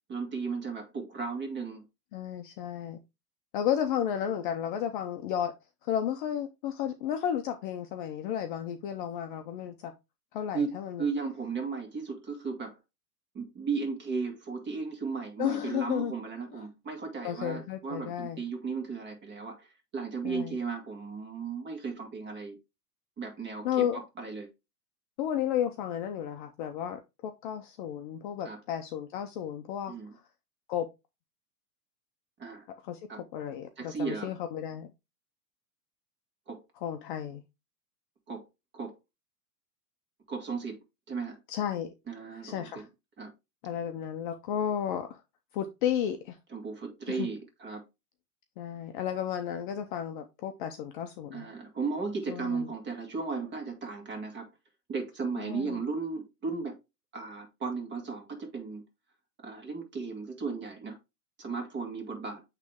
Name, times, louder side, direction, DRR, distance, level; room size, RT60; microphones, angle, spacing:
voice 1, 0.1-1.8 10.5-12.8 13.3-19.7 19.9-22.6 23.2-23.7 23.9-24.5 28.4-28.6 29.9-30.1 32.4-32.6 33.1-33.2 33.8-34.3 36.5-36.6 38.3-38.4 38.7-38.9 40.3-40.8 41.1-41.4 42.1-42.8 43.2-43.3 46.5-47.8 51.3-54.5 54.9-56.8 57.1-58.8 59.4-61.0 61.4-62.4, right 4 dB, 25° right, 2.1 m, -35 dB
voice 2, 2.1-3.0 3.5-5.5 5.8-9.9 10.3-11.1 15.4-16.1 16.5-16.7 17.2-18.4 20.2-20.6 23.6-24.0 25.2-29.9 30.7-30.9 32.8-33.0 33.3-34.9 36.8-37.4 41.5-41.9 42.4-42.9 43.6-45.2 45.5-46.4 47.1-47.3 48.6-51.5 52.3-52.7 55.4-55.8, left 9 dB, 35° left, 0.6 m, -33 dB
8.2 x 3.2 x 3.5 m
hypercardioid pair, 135°, 47 cm